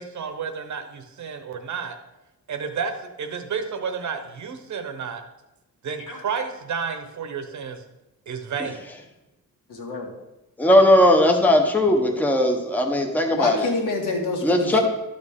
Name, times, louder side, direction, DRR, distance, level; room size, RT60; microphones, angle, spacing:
voice 1, 0.0-2.0 2.5-2.9 3.2-5.2 5.8-7.8 8.3-8.8, right 6 dB, 60° right, 7 dB, 0.9 m, -31 dB
voice 2, 9.7-10.1 13.3-14.8, left 3 dB, 70° left, 1 dB, 1.7 m, -27 dB
voice 3, 10.6-13.7 14.4-14.8, left 1 dB, 5° left, 3 dB, 0.8 m, -18 dB
12.0 x 6.6 x 3.6 m, 0.97 s
wide cardioid pair, 175°, 34 cm